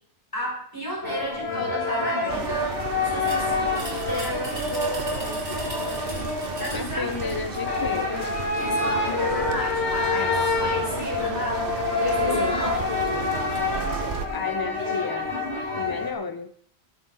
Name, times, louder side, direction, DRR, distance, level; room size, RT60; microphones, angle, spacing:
voice 1, 0.3-2.7 3.0-7.4 8.6-11.7 12.0-12.8, left 1 dB, 20° left, -3 dB, 5.7 m, -33 dB
sound 1, 1.0-16.1, left 3 dB, 75° left, 3.0 m, -27 dB
sound 2, 2.3-14.3, right 6 dB, 55° right, 1.1 m, -34 dB
sound 3, 3.2-7.7, right 1 dB, 85° right, 3.0 m, -39 dB
voice 2, 6.7-8.1 10.1-10.4 12.2-12.6 14.3-15.3 15.7-16.5, left 4 dB, 35° left, 10 dB, 0.3 m, -32 dB
19.5 x 9.0 x 3.9 m, 0.62 s
omnidirectional pair, 1.1 m